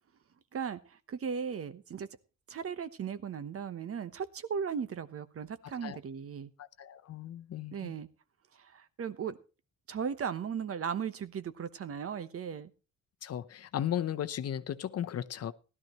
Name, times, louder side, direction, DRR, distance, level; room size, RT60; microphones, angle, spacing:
voice 1, 0.5-2.1 2.5-6.5 7.7-8.1 8.5-9.4 9.9-12.7, right 7 dB, 50° right, 13 dB, 1.1 m, -37 dB
voice 2, 6.8-7.9 13.2-15.5, left 10 dB, 55° left, 12 dB, 0.8 m, -35 dB
16.5 x 12.0 x 3.1 m, 0.32 s
cardioid pair, 90°, 30 cm